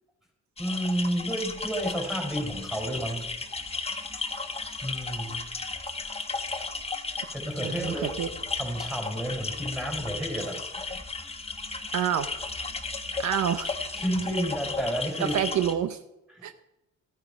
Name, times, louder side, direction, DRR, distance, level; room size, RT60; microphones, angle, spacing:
sound 1, 0.6-15.7, left 4 dB, 20° left, 1.3 m, -34 dB
voice 1, 0.6-3.3 4.8-5.5 7.3-8.2 8.6-10.6 14.0-15.4 16.3-16.5, right 1 dB, ahead, 2 dB, 4.1 m, -31 dB
voice 2, 7.6-8.3 11.9-12.3 13.2-13.8 15.2-16.0 16.4-16.6, right 9 dB, 70° right, 11 dB, 0.8 m, -28 dB
14.0 x 9.1 x 4.9 m, 0.92 s
cardioid pair, 90°, 30 cm